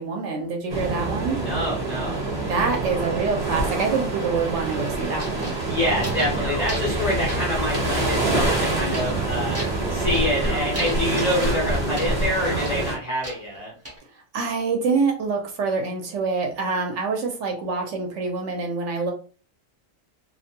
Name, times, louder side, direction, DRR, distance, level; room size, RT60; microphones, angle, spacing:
voice 1, 0.0-1.4 2.5-5.5 14.3-19.1, right 4 dB, 65° right, 2 dB, 0.9 m, -26 dB
sound 1, 0.7-13.0, right 3 dB, 40° right, 0.9 m, -26 dB
voice 2, 1.4-2.3 5.7-9.6 9.9-13.7, left 1 dB, 40° left, -3 dB, 0.6 m, -26 dB
sound 2, 5.2-6.4 6.6-7.0 7.3-8.3 8.9-9.2 9.5-10.4 10.7-12.2 12.6-14.0, equal, 15° right, 0.5 m, -37 dB
sound 3, 5.6-12.8, left 2 dB, 75° left, 0.4 m, -31 dB
2.4 x 2.2 x 2.7 m, 0.38 s
omnidirectional pair, 1.4 m